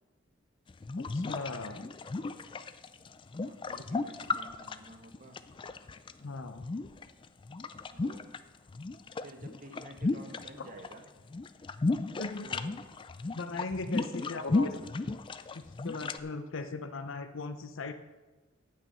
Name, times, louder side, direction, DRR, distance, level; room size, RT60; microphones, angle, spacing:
sound 1, 0.7-6.1 6.6-8.4 8.7-10.9 11.2-16.2, left 3 dB, 25° left, 0.3 m, -34 dB
voice 1, 1.0-1.8 6.2-6.6 12.2-12.6 13.3-14.8 15.5-17.9, left 3 dB, 75° left, 9 dB, 0.7 m, -38 dB
voice 2, 3.3-5.4 7.9-8.3 9.2-11.1 12.4-12.8 13.9-14.5, right 1 dB, 45° right, 5 dB, 1.2 m, -50 dB
9.1 x 8.5 x 5.5 m, 1.2 s
head